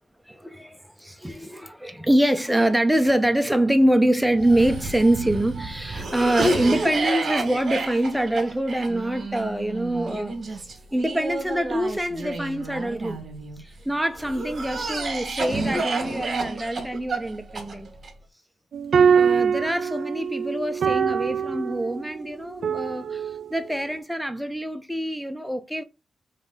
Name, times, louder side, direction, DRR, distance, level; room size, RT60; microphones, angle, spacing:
voice 1, 0.3-13.2 13.6-17.9 19.1-25.8, right 1 dB, 5° right, 0.7 m, -25 dB
Cough, 4.4-13.6 14.2-18.1, right 2 dB, 45° right, 1.9 m, -30 dB
sound 1, 18.7-23.8, right 7 dB, 65° right, 0.4 m, -23 dB
3.7 x 3.4 x 4.0 m
cardioid pair, 95°, 0 cm